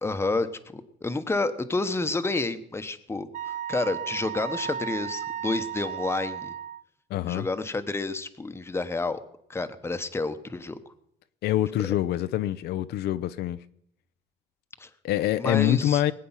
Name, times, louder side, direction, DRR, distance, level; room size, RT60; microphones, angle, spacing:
voice 1, 0.0-0.5 0.7-3.3 3.7-6.5 7.2-9.2 9.5-10.8 14.8-14.9 15.4-16.0, left 3 dB, 15° left, 1.0 m, -29 dB
Wind instrument woodwind instrument, 3.3-6.8, right 9 dB, 50° right, 0.5 m, -34 dB
voice 2, 7.1-7.5 11.4-13.6 15.0-16.1, left 13 dB, 75° left, 0.6 m, -25 dB
20.0 x 8.5 x 5.6 m
cardioid pair, 110°, 17 cm